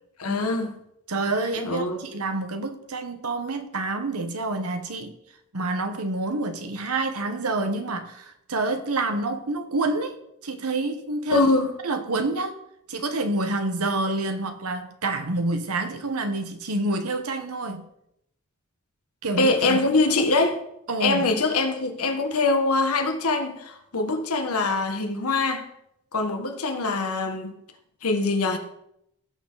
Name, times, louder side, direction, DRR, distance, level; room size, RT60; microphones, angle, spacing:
voice 1, 0.2-0.7 1.5-2.0 11.3-11.7 19.4-20.6 21.0-25.7 26.1-27.5 28.0-28.6, left 3 dB, 85° left, 1.6 m, -23 dB
voice 2, 1.1-5.1 5.5-10.2 10.4-11.5 11.8-12.6 12.9-17.9 19.2-19.9 20.9-21.3, right 2 dB, 90° right, 1.2 m, -28 dB
17.5 x 6.6 x 4.0 m
head